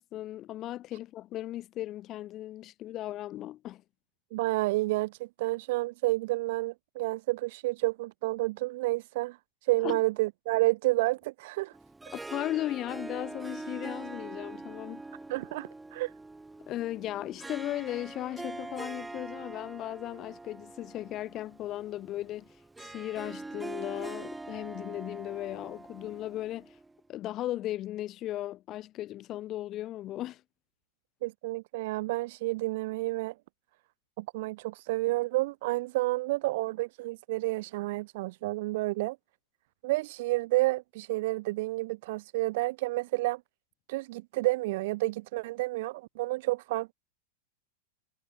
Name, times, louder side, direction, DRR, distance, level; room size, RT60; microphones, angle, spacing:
voice 1, 0.0-3.8 9.8-10.0 12.1-15.0 16.7-22.5 22.8-26.7 27.1-30.4, left 14 dB, 35° left, 3.0 m, -36 dB
voice 2, 4.3-11.8 15.3-16.1 31.2-33.3 34.2-39.2 39.8-43.4 43.9-46.9, right 20 dB, 60° right, 1.2 m, -30 dB
Harp, 11.7-27.0, right 2 dB, 10° right, 3.2 m, -43 dB
hypercardioid pair, 125°, 0 cm